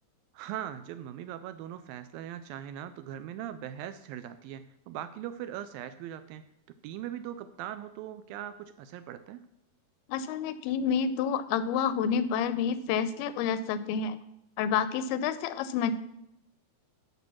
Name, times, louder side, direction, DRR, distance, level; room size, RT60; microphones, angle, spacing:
voice 1, 0.3-6.5 6.8-9.4, right 11 dB, 80° right, 11 dB, 2.2 m, -40 dB
voice 2, 10.1-14.2 14.6-15.9, left 7 dB, 85° left, 13 dB, 2.4 m, -29 dB
12.5 x 5.1 x 6.2 m, 0.80 s
omnidirectional pair, 4.4 m